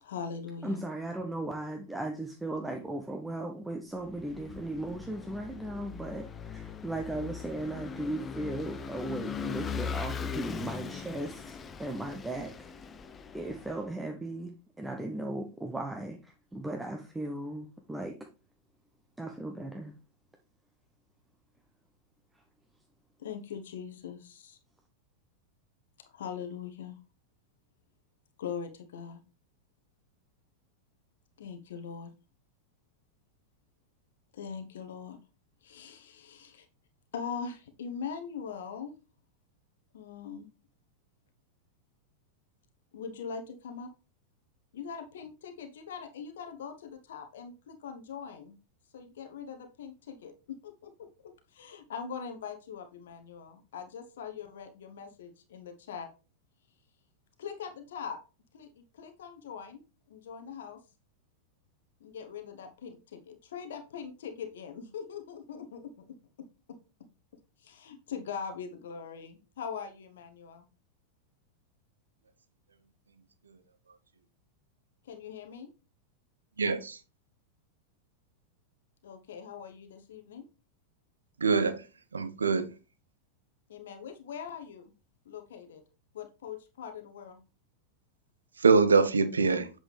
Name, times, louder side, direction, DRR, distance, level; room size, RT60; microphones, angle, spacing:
voice 1, 0.0-0.8 23.2-24.6 26.1-27.0 28.4-29.2 31.4-32.1 34.3-35.2 35.6-36.7 37.1-38.9 39.9-40.5 42.9-43.9 44.7-48.6 48.9-56.1 57.4-58.2 58.5-59.8 60.1-60.8 62.0-66.8 67.6-70.7 75.0-75.7 79.0-80.4 83.7-84.9 85.2-85.8 86.1-87.4, left 6 dB, 60° left, 1.0 m, -42 dB
voice 2, 0.6-12.7 13.3-18.2 19.2-19.9, right 1 dB, 5° right, 0.9 m, -37 dB
Vehicle / Engine, 4.0-13.8, left 6 dB, 20° left, 0.6 m, -40 dB
voice 3, 76.6-77.0 81.4-81.9 82.1-82.7 88.6-89.7, right 4 dB, 75° right, 0.8 m, -24 dB
8.0 x 6.1 x 3.3 m
figure-of-eight pair, 90°, 0 cm